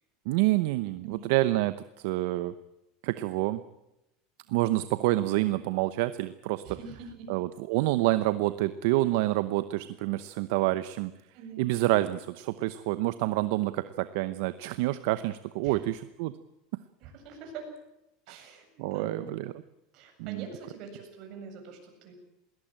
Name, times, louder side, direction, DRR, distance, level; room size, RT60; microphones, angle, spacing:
voice 1, 0.3-2.5 3.0-3.6 4.5-6.8 7.3-11.1 11.6-16.3 18.3-18.4 18.8-19.4 20.2-20.5, right 17 dB, 70° right, 13 dB, 0.8 m, -28 dB
voice 2, 6.6-7.3 11.3-11.7 15.6-15.8 17.0-17.7 18.3-19.3 19.9-22.1, right 5 dB, 50° right, 3 dB, 7.8 m, -44 dB
21.0 x 19.0 x 8.9 m, 0.89 s
supercardioid pair, 145°, 0 cm